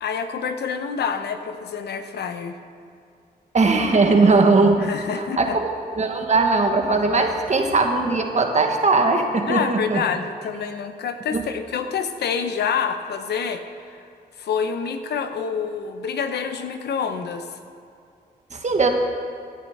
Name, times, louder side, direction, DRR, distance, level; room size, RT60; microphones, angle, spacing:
voice 1, 0.0-2.6 4.8-5.6 9.5-13.6 13.9-14.0 14.4-17.5, left 6 dB, 85° left, 8 dB, 0.8 m, -27 dB
voice 2, 3.5-4.9 5.2-5.6 5.9-10.1 11.3-11.4 18.5-18.9, right 3 dB, 45° right, 4 dB, 1.5 m, -19 dB
16.0 x 10.5 x 3.6 m, 2.5 s
cardioid pair, 65°, 17 cm